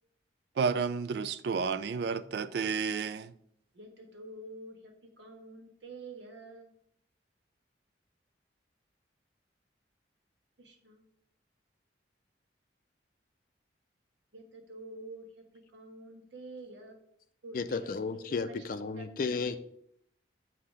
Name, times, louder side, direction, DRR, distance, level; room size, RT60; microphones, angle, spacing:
voice 1, 0.6-3.3, right 5 dB, 60° right, 0.3 m, -31 dB
voice 2, 3.7-6.7 10.6-11.0 14.3-17.0 17.4-19.4, right 2 dB, 80° right, 1.2 m, -48 dB
voice 3, 17.5-19.6, left 4 dB, 50° left, 0.4 m, -33 dB
7.6 x 2.8 x 4.9 m
head